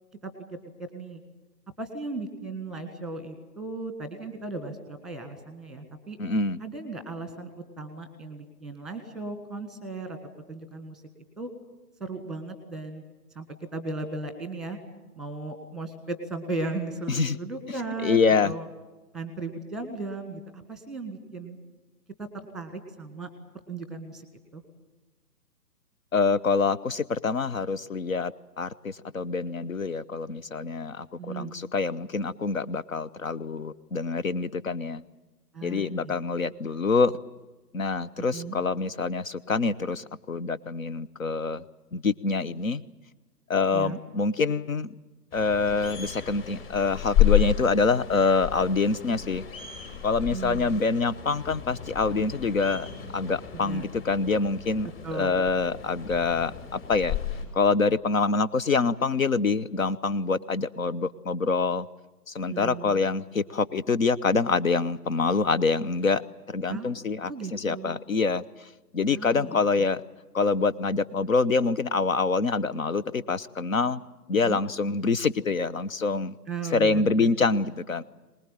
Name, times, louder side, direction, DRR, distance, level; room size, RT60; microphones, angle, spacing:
voice 1, 1.8-6.2 6.6-10.2 10.5-11.0 11.4-11.5 12.0-13.0 13.3-13.4 13.7-14.8 15.2-18.7 19.1-21.6 22.2-22.3 22.5-23.3 23.7-24.3 24.5-24.6 31.2-31.5 35.5-36.1 38.2-38.6 43.7-44.0 50.3-50.8 53.5-53.8 55.0-55.4 62.4-63.0 66.7-67.9 69.1-69.9 74.3-74.6 76.5-77.3, right 3 dB, ahead, 8 dB, 1.6 m, -36 dB
voice 2, 6.2-6.6 17.1-17.4 18.0-18.5 26.1-35.0 35.6-37.1 37.7-41.6 41.9-42.8 43.5-44.9 45.3-49.4 50.0-52.9 53.1-57.2 57.5-61.9 62.3-66.2 66.5-70.0 70.3-74.0 74.3-76.3 76.6-78.0, left 4 dB, 55° left, 14 dB, 1.0 m, -26 dB
sound 1, 45.3-57.4, left 11 dB, 35° left, 5.9 m, -31 dB
23.5 x 20.0 x 9.1 m, 1.2 s
figure-of-eight pair, 145°, 48 cm